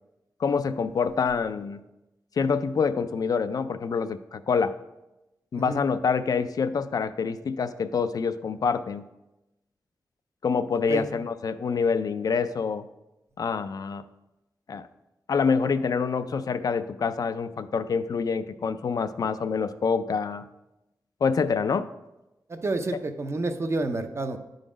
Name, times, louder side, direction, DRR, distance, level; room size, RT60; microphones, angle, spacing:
voice 1, 0.4-1.8 2.4-4.7 5.5-9.1 10.4-12.9 13.4-14.0 14.7-14.9 15.3-20.5 21.2-21.9, left 5 dB, 60° left, 12 dB, 0.4 m, -26 dB
voice 2, 10.7-11.1 22.5-24.4, right 2 dB, 40° right, 7 dB, 0.6 m, -29 dB
9.7 x 3.9 x 5.0 m, 0.96 s
wide cardioid pair, 115°, 7 cm